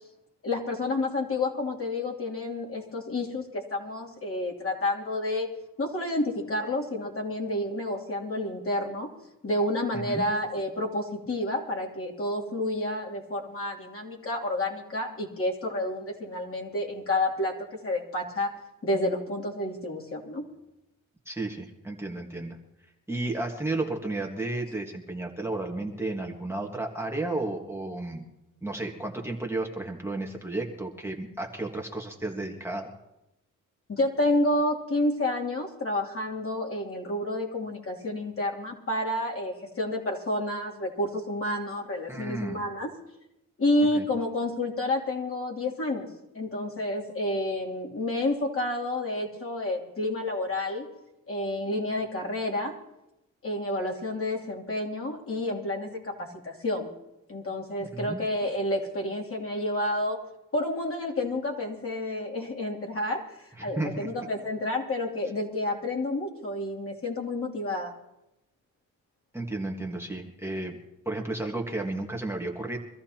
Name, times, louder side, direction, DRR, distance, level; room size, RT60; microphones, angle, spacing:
voice 1, 0.4-5.5 5.8-9.1 9.4-18.5 18.8-20.5 33.9-42.9 43.6-46.1 46.3-50.9 51.3-52.7 53.4-56.9 57.3-60.2 60.5-67.9, left 1 dB, 40° left, -2 dB, 3.0 m, -30 dB
voice 2, 9.9-10.2 21.2-22.6 23.1-28.2 28.6-32.9 42.1-42.6 43.9-44.1 57.9-58.2 63.6-64.1 69.3-70.8 71.0-72.8, right 2 dB, 10° right, 0 dB, 1.6 m, -33 dB
24.0 x 14.0 x 2.9 m, 0.91 s
cardioid pair, 100°, 32 cm